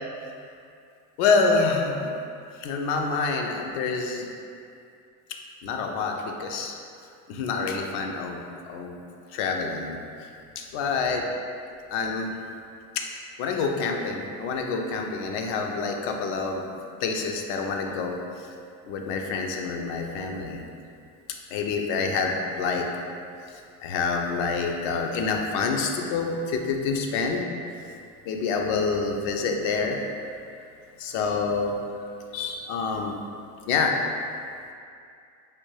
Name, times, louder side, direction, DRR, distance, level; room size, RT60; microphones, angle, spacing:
voice 1, 1.2-2.1 2.6-4.3 5.6-6.8 7.3-8.4 8.7-9.0 9.3-10.0 10.6-11.2 11.9-12.3 12.9-13.1 13.4-16.6 17.0-18.5 18.8-20.6 21.5-22.9 23.5-27.4 28.3-30.0 31.0-31.7 32.3-33.2 33.7-34.0, left 4 dB, 75° left, 2 dB, 0.6 m, -27 dB
3.4 x 2.3 x 3.1 m, 2.4 s
supercardioid pair, 80°, 44 cm